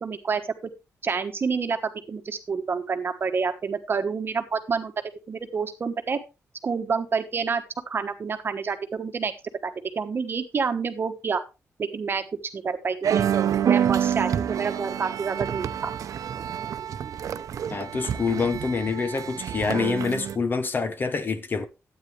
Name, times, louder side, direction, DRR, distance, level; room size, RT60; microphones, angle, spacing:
voice 1, 0.0-0.4 1.0-1.8 2.1-4.9 5.3-6.2 6.6-9.3 9.6-11.4 11.8-12.2 12.5-13.3 13.6-15.9, right 5 dB, 40° right, 1.2 m, -28 dB
sound 1, 13.0-20.4, right 9 dB, 85° right, 0.7 m, -27 dB
voice 2, 17.7-21.7, left 4 dB, 35° left, 1.0 m, -26 dB
12.5 x 9.0 x 3.2 m
wide cardioid pair, 165°, 6 cm